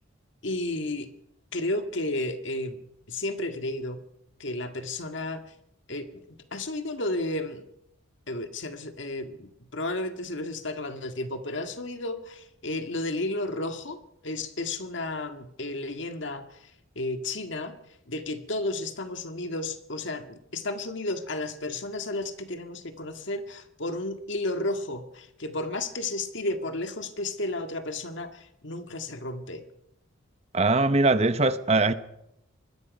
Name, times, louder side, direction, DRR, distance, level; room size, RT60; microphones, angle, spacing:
voice 1, 0.4-1.1 1.5-2.8 3.1-4.0 4.4-5.4 5.9-7.6 8.3-17.7 18.1-29.6, left 2 dB, 65° left, 1.9 m, -33 dB
voice 2, 30.5-31.9, right 2 dB, 30° right, 0.9 m, -21 dB
25.0 x 20.5 x 5.3 m
head